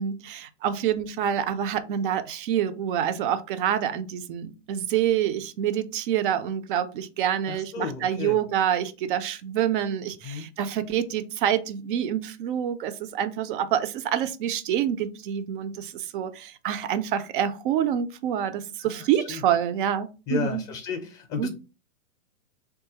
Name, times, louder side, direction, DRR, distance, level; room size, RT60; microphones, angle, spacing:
voice 1, 0.0-20.7 21.4-21.5, right 9 dB, 45° right, 0.4 m, -27 dB
voice 2, 7.5-8.4 10.2-10.4 18.8-19.4 20.3-21.5, left 5 dB, 30° left, 0.5 m, -33 dB
3.1 x 2.3 x 2.8 m
hypercardioid pair, 125°, 38 cm